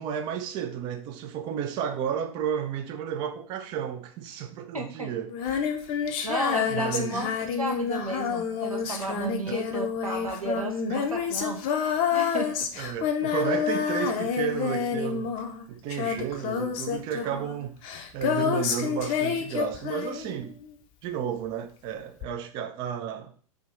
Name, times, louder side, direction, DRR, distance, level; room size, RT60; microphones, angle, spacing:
voice 1, 0.0-5.7 6.7-7.3 9.4-9.6 10.9-11.1 12.8-15.3 15.7-17.8 18.1-20.5 21.0-23.3, right 9 dB, 25° right, 0.3 m, -32 dB
voice 2, 4.7-5.1 6.2-7.3 7.6-11.6 12.1-12.5, right 2 dB, 80° right, 0.9 m, -33 dB
Female singing, 5.3-20.7 22.2-22.3, left 7 dB, 35° left, 0.6 m, -28 dB
3.4 x 2.6 x 4.4 m
figure-of-eight pair, 100°, 18 cm